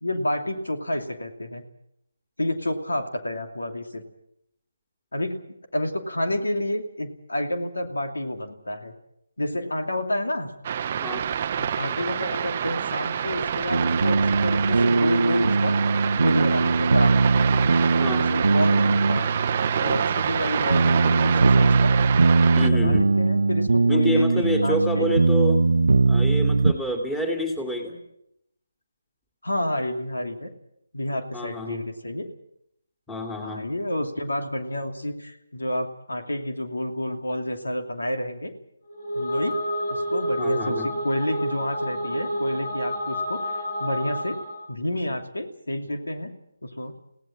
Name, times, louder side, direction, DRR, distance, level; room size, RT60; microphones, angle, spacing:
voice 1, 0.0-1.6 2.4-4.0 5.1-8.9 9.4-10.5 11.6-15.8 16.2-17.3 18.1-19.3 19.8-21.9 22.4-25.1 29.4-30.5 30.9-32.3 33.4-38.5 39.1-39.6 39.9-44.4 44.7-46.3 46.6-46.9, left 1 dB, 85° left, 5 dB, 2.7 m, -29 dB
sound 1, 10.6-22.7, right 8 dB, 35° right, 0.7 m, -27 dB
sound 2, 13.7-26.7, right 3 dB, 75° right, 0.8 m, -21 dB
voice 2, 18.0-18.3 22.5-23.1 23.9-25.6 26.0-28.0 31.3-31.8 33.1-33.6 40.4-40.9, equal, 5° left, 3 dB, 2.7 m, -28 dB
sound 3, 38.9-44.7, equal, 60° left, 7.6 m, -29 dB
21.5 x 17.0 x 7.6 m, 0.77 s
figure-of-eight pair, 155°, 0 cm